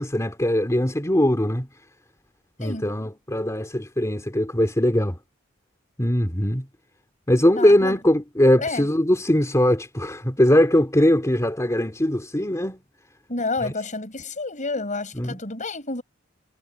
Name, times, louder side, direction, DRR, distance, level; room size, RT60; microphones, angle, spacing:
voice 1, 0.0-1.7 2.6-5.2 6.0-6.7 7.3-12.8 13.6-13.7 15.2-15.4, left 1 dB, 15° left, 3.1 m, -21 dB
voice 2, 2.6-2.9 7.6-8.0 8.6-8.9 13.3-16.0, left 3 dB, 40° left, 6.2 m, -29 dB
head